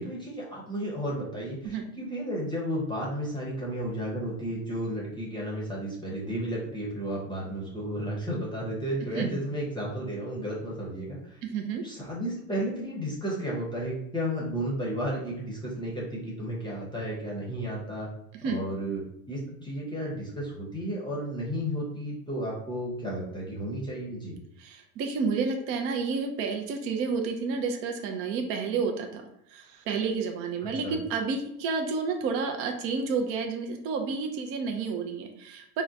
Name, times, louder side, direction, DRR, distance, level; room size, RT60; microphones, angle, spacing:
voice 1, 0.0-11.4 11.8-18.1 18.4-19.0 19.3-24.3 30.8-31.0, equal, 10° left, -4 dB, 0.7 m, -33 dB
voice 2, 11.4-11.8 18.4-18.6 24.6-29.2 29.5-35.8, right 5 dB, 35° right, 3 dB, 0.4 m, -30 dB
3.7 x 2.1 x 2.7 m, 0.75 s
supercardioid pair, 115°, 44 cm